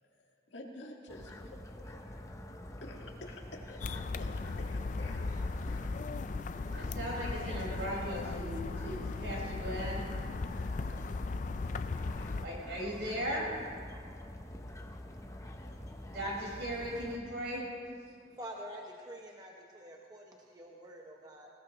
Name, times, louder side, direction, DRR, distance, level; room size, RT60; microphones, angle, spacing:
voice 1, 0.0-2.3 2.8-5.3 5.7-5.9, left 1 dB, 80° left, 0 dB, 1.8 m, -50 dB
sound 1, 1.1-17.2, left 1 dB, 15° left, 0.8 m, -47 dB
sound 2, 3.8-12.5, left 3 dB, 45° left, 0.4 m, -37 dB
voice 2, 6.7-10.0 12.4-13.4 16.1-17.6, equal, 70° right, -4 dB, 4.8 m, -37 dB
voice 3, 18.1-21.5, equal, 20° right, -1 dB, 0.9 m, -47 dB
20.0 x 17.0 x 3.0 m, 2.2 s
head